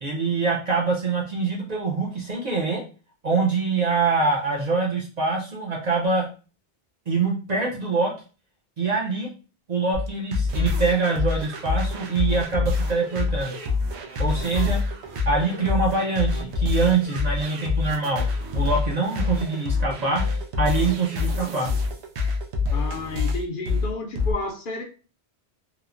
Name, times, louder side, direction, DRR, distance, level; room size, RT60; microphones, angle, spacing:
voice 1, 0.0-2.8 3.2-6.3 7.1-8.1 8.8-9.3 9.7-13.5 14.2-14.8 15.3-18.2 18.5-20.2 20.6-21.7, right 4 dB, 50° right, 0.6 m, -24 dB
sound 1, 9.9-24.3, left 4 dB, 90° right, 0.8 m, -26 dB
voice 2, 22.7-24.8, left 3 dB, 60° left, 0.7 m, -31 dB
2.9 x 2.0 x 2.4 m
omnidirectional pair, 1.1 m